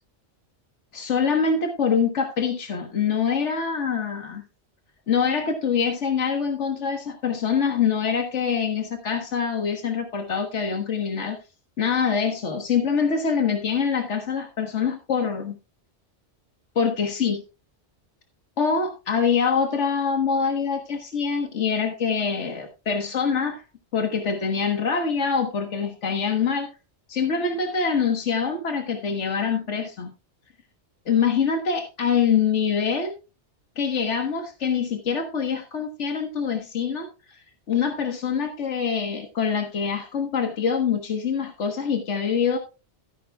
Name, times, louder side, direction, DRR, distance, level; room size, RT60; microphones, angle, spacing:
voice 1, 0.9-4.4 5.1-11.4 11.8-15.6 16.8-17.4 18.6-23.6 23.9-26.7 27.1-30.1 31.1-33.1 33.8-37.4 37.7-42.6, left 6 dB, 85° left, 3 dB, 1.7 m, -24 dB
13.5 x 10.5 x 2.3 m, 0.29 s
omnidirectional pair, 1.2 m